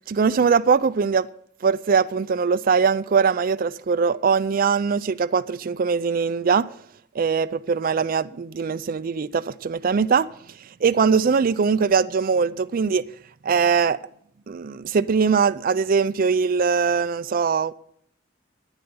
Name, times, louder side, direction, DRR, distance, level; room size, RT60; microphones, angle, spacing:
voice 1, 0.1-1.3 1.6-6.7 7.2-10.3 10.8-13.1 13.4-14.0 14.5-17.7, right 5 dB, 50° right, 0.4 m, -21 dB
10.5 x 9.8 x 7.0 m
head